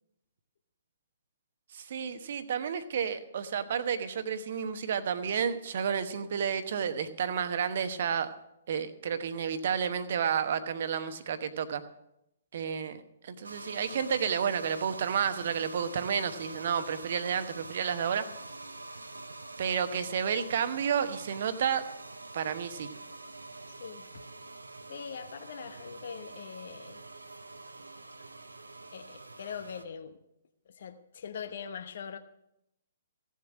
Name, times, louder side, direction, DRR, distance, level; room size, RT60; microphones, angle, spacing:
voice 1, 1.7-8.3 8.7-11.8 12.5-18.3 19.6-21.9 22.3-22.9, right 7 dB, 50° right, 11 dB, 1.0 m, -31 dB
sound 1, 13.4-29.8, right 2 dB, 75° right, 0.9 m, -45 dB
voice 2, 23.7-24.2 24.9-27.0 28.9-30.2 30.7-32.2, left 7 dB, 50° left, 10 dB, 0.9 m, -42 dB
16.0 x 7.5 x 6.1 m, 0.84 s
figure-of-eight pair, 125°, 0 cm